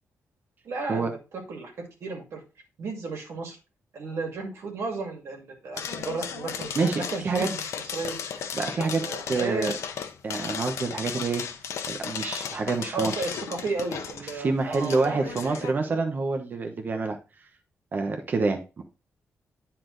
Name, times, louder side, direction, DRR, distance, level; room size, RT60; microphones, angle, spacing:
voice 1, 0.6-2.4 2.8-3.6 3.9-7.6 7.9-8.5 9.0-9.8 12.9-15.7, right 3 dB, 65° right, 2 dB, 2.3 m, -34 dB
sound 1, 5.7-15.7, left 7 dB, 80° left, 0.9 m, -35 dB
voice 2, 6.7-7.5 8.5-9.7 10.2-11.4 11.9-13.1 14.3-17.2 17.9-18.8, right 4 dB, 40° right, 5 dB, 1.0 m, -27 dB
9.8 x 4.3 x 3.9 m, 0.30 s
wide cardioid pair, 140°, 5 cm